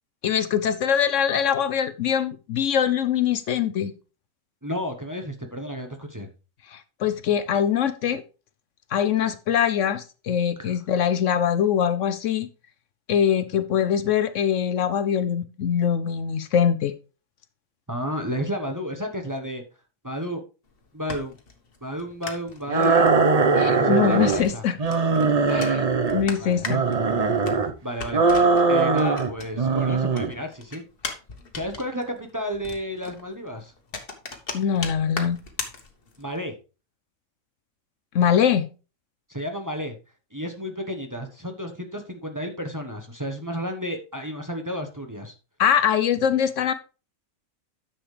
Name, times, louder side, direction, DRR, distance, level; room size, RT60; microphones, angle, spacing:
voice 1, 0.2-3.9 6.7-8.2 8.9-12.5 13.1-16.9 23.6-24.8 25.5-25.8 26.1-26.8 34.5-35.4 38.1-38.6 45.6-46.7, left 8 dB, 70° left, 0.9 m, -23 dB
voice 2, 4.6-6.3 17.9-19.6 20.0-20.4 20.9-21.4 21.8-23.1 23.7-24.6 25.5-25.7 26.4-26.7 27.8-30.8 31.5-33.7 36.2-36.5 39.3-39.9 40.3-45.3, equal, 15° right, 1.0 m, -32 dB
sound 1, 20.7-29.8 30.1-36.4, left 4 dB, 45° left, 1.5 m, -38 dB
sound 2, 22.7-24.4 24.8-26.3 26.6-27.7 28.1-29.3 29.6-30.3, right 4 dB, 35° right, 0.7 m, -20 dB
10.0 x 7.1 x 3.3 m
omnidirectional pair, 1.4 m